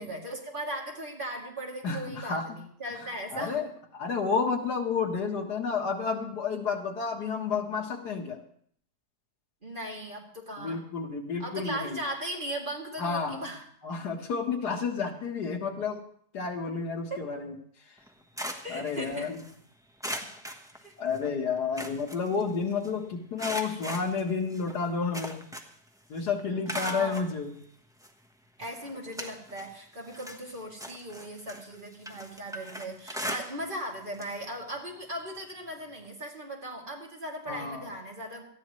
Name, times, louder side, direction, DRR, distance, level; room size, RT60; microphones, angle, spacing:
voice 1, 0.0-3.6 9.6-10.8 11.4-13.6 17.1-17.2 18.6-19.3 20.8-20.9 26.5-27.1 28.6-38.4, right 1 dB, 30° right, -2 dB, 2.8 m, -38 dB
voice 2, 1.8-2.4 3.3-8.4 10.6-12.0 13.0-13.5 13.8-16.0 16.3-17.6 18.7-19.4 21.0-25.4 26.1-27.5 37.5-37.9, left 5 dB, 85° left, 3 dB, 2.0 m, -31 dB
sound 1, 18.0-19.5 20.0-21.3 21.6-22.9 23.4-25.9 26.2-27.3 28.0-28.1 28.6-29.7 30.0-33.9 34.1-34.4 34.7-34.8 36.0-36.1, equal, 5° right, 0.9 m, -39 dB
18.5 x 13.5 x 3.2 m, 0.62 s
omnidirectional pair, 1.7 m